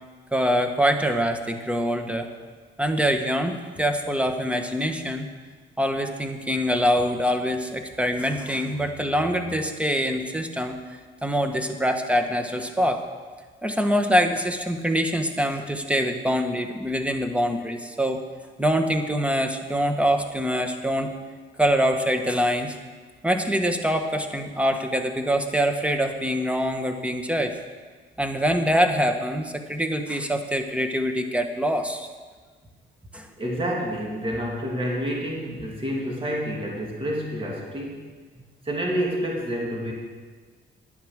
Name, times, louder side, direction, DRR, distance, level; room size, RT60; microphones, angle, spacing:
voice 1, 0.3-2.3 2.8-5.3 5.8-10.8 11.2-13.0 13.6-18.2 18.6-21.1 21.6-22.8 23.2-27.6 28.2-32.1 33.1-33.3, equal, 5° right, 6 dB, 1.4 m, -24 dB
voice 2, 33.4-38.0 38.6-39.9, equal, 25° right, -2 dB, 2.5 m, -28 dB
10.5 x 10.0 x 6.4 m, 1.5 s
cardioid pair, 90°, 20 cm